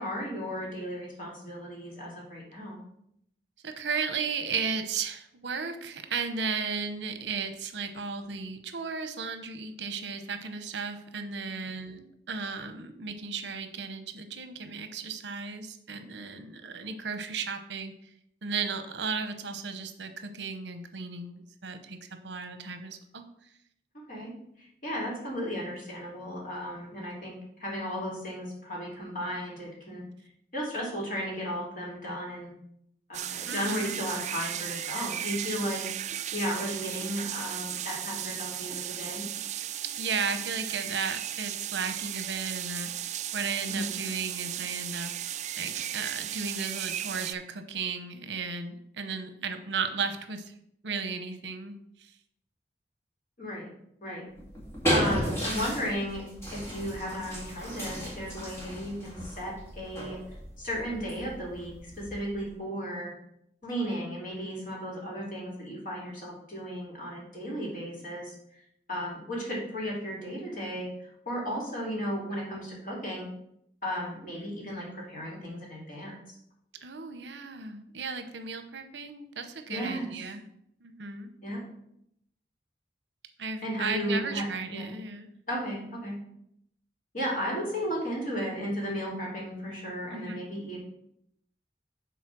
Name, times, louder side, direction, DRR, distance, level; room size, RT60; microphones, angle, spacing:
voice 1, 0.0-2.8 11.4-11.6 24.1-24.3 24.6-27.3 27.6-30.0 30.5-32.5 33.1-35.8 36.3-39.2 43.7-43.9 53.4-53.7 54.0-54.2 54.9-56.2 56.5-60.2 60.6-63.1 63.6-68.6 68.9-73.3 73.8-76.2 79.7-80.1 81.4-81.6 83.6-84.4 84.7-84.9 85.5-86.2 87.1-90.8, equal, 50° left, -4 dB, 2.9 m, -34 dB
voice 2, 3.6-18.1 18.4-23.2 33.5-34.0 40.0-50.5 50.8-52.1 76.8-80.4 80.8-81.3 83.4-85.3 90.1-90.4, right 5 dB, 85° right, 8 dB, 0.8 m, -35 dB
sound 1, 33.1-47.3, right 11 dB, 40° right, 0.3 m, -35 dB
sound 2, 54.4-62.5, equal, 15° left, 2.0 m, -34 dB
7.2 x 4.0 x 6.1 m, 0.74 s
head